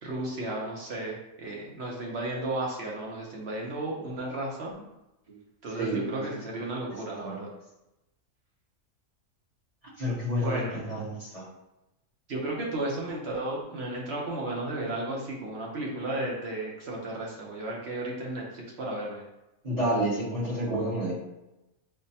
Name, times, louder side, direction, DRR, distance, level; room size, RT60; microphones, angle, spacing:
voice 1, 0.0-4.7 5.6-7.5 10.4-10.8 12.3-19.2, right 2 dB, 60° right, -2 dB, 0.9 m, -34 dB
voice 2, 5.8-6.2 7.2-7.4 10.0-11.4 19.6-21.1, right 1 dB, 30° right, -7 dB, 0.9 m, -29 dB
5.2 x 2.0 x 2.7 m, 0.95 s
omnidirectional pair, 1.4 m